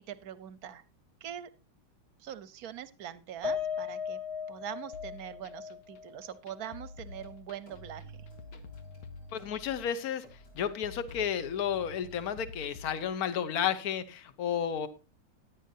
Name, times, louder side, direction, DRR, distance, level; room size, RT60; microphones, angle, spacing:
voice 1, 0.1-0.8 1.2-1.5 2.2-4.2 4.5-8.1, right 10 dB, 55° right, 15 dB, 1.1 m, -43 dB
Piano, 3.4-7.9 8.3-8.4 8.8-9.0, left 6 dB, 35° right, 0.5 m, -38 dB
sound 1, 4.9-13.1, left 4 dB, 85° left, 1.8 m, -49 dB
sound 2, 7.1-7.3 7.7-10.7 11.1-12.5, right 2 dB, 70° left, 4.2 m, -51 dB
voice 2, 9.3-10.2 10.5-14.9, left 8 dB, 55° left, 13 dB, 1.3 m, -32 dB
17.0 x 11.0 x 2.8 m, 0.29 s
omnidirectional pair, 2.2 m